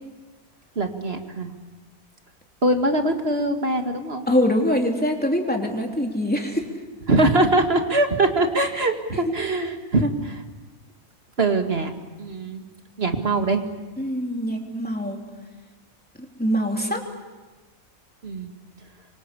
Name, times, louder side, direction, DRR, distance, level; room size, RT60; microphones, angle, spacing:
voice 1, 0.8-1.5 2.6-4.3 7.1-10.4 11.4-11.9 12.2-12.6 13.0-13.6 18.2-18.5, right 2 dB, 45° right, 5 dB, 2.3 m, -22 dB
voice 2, 4.3-6.7 9.3-9.4 14.0-15.2 16.2-17.0, equal, 5° left, 1 dB, 3.4 m, -24 dB
26.5 x 25.0 x 8.3 m, 1.3 s
omnidirectional pair, 1.5 m